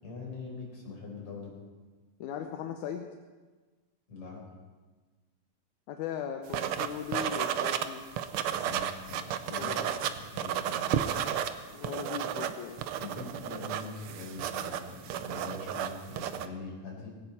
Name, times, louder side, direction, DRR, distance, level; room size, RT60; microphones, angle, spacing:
voice 1, 0.0-1.5 4.1-4.4 8.4-10.9 13.0-17.1, left 3 dB, 50° left, -2 dB, 5.3 m, -43 dB
voice 2, 2.2-3.1 5.9-8.0 9.5-9.9 11.7-12.8, left 8 dB, 80° left, 5 dB, 2.3 m, -38 dB
sound 1, 6.5-7.9 8.2-11.5 11.8-16.5, right 10 dB, 85° right, 1.2 m, -32 dB
19.0 x 17.5 x 4.3 m, 1.3 s
omnidirectional pair, 3.4 m